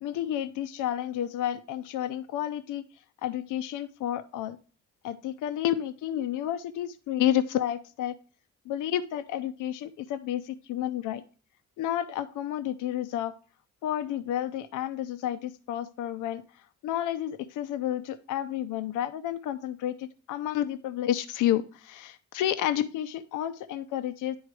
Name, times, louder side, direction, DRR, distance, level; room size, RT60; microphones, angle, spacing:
voice 1, 0.0-2.8 3.2-4.6 5.0-8.1 8.7-11.2 11.8-13.3 13.8-16.4 16.8-24.4, left 11 dB, 85° left, 10 dB, 0.6 m, -30 dB
9.9 x 3.9 x 4.6 m, 0.38 s
cardioid pair, 90°, 30 cm